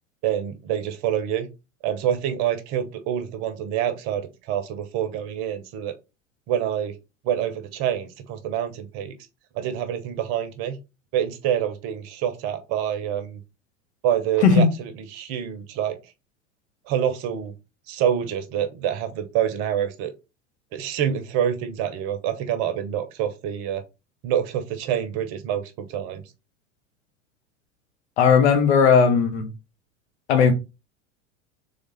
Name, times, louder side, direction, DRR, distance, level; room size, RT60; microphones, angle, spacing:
voice 1, 0.2-1.5 1.8-5.9 6.5-7.0 7.2-9.2 9.5-10.8 11.1-13.4 14.0-16.0 16.9-17.5 17.9-20.1 20.7-23.8 24.2-26.2, right 10 dB, 40° right, 0.8 m, -26 dB
voice 2, 28.2-29.5 30.3-30.5, left 6 dB, 60° left, 1.2 m, -16 dB
3.5 x 3.5 x 4.0 m
figure-of-eight pair, 80°, 38 cm